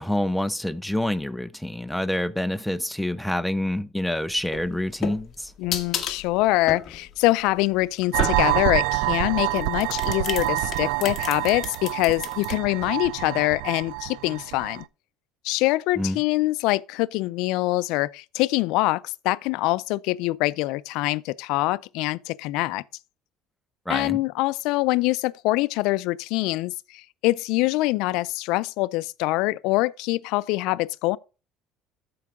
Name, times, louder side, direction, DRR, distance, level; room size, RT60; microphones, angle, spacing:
voice 1, 0.0-5.5 16.0-16.2 23.9-24.2, left 1 dB, ahead, 0.3 m, -27 dB
sound 1, 4.4-8.7 9.5-12.5, left 7 dB, 35° left, 1.3 m, -33 dB
voice 2, 5.6-14.8 15.4-22.8 23.9-31.2, left 19 dB, 75° left, 0.4 m, -24 dB
sound 2, 8.1-14.8, right 18 dB, 80° right, 0.3 m, -27 dB
13.5 x 4.6 x 3.6 m
cardioid pair, 150°, 0 cm